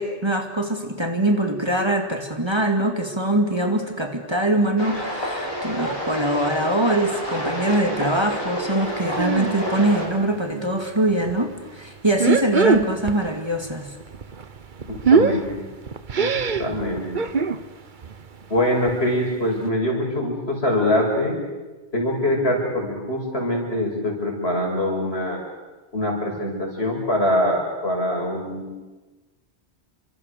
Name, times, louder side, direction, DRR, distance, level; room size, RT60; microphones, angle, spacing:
voice 1, 0.0-13.9, right 1 dB, 25° right, 3 dB, 2.4 m, -23 dB
sound 1, 4.8-10.1, equal, 20° left, 7.1 m, -29 dB
sound 2, 9.2-9.6 9.9-10.7 11.1-11.3 12.1-13.3 13.5-17.6 18.0-18.3 18.6-18.7 18.9-19.0 19.5-19.6, right 5 dB, 45° right, 1.1 m, -22 dB
voice 2, 14.8-15.5 16.2-17.3 18.5-21.4 21.9-25.4 25.9-28.7, left 1 dB, 65° left, 1 dB, 6.4 m, -23 dB
30.0 x 25.0 x 6.8 m, 1.2 s
omnidirectional pair, 1.1 m